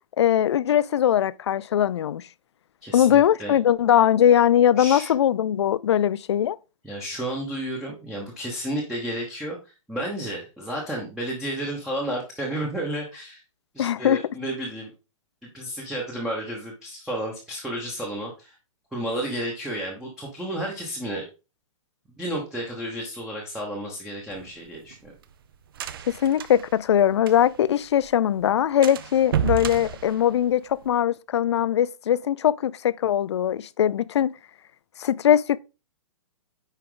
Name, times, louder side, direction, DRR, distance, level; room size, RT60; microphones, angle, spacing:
voice 1, 0.2-2.2 2.9-6.6 13.8-14.2 26.1-34.3 35.0-35.6, left 10 dB, 55° left, 0.5 m, -21 dB
voice 2, 2.8-3.6 4.8-5.1 6.8-13.4 13.7-14.9 15.4-18.6 18.9-21.3 22.2-25.1, right 1 dB, ahead, 1.0 m, -32 dB
sound 1, 24.3-27.7 28.0-28.1 28.4-28.5 28.8-30.9, right 9 dB, 40° right, 0.6 m, -31 dB
9.8 x 4.6 x 3.8 m
hypercardioid pair, 175°, 17 cm